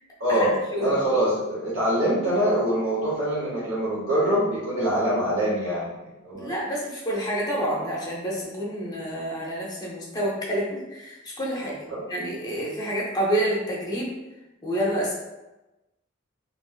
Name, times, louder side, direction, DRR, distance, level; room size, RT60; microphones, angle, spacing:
voice 1, 0.2-5.9 6.2-6.5 11.9-12.0, right 1 dB, 75° right, -8 dB, 0.9 m, -24 dB
voice 2, 6.3-11.7 12.1-14.1 14.6-15.1, equal, 20° left, -4 dB, 0.7 m, -28 dB
3.4 x 2.4 x 2.3 m, 1.0 s
head